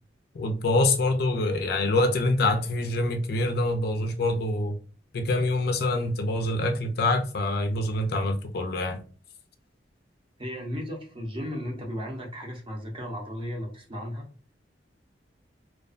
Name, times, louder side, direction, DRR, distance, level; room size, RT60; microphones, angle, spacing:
voice 1, 0.3-4.8 5.1-9.0, left 2 dB, 60° left, 0.4 m, -25 dB
voice 2, 10.4-14.2, equal, 30° right, 0.6 m, -35 dB
2.3 x 2.2 x 2.4 m
head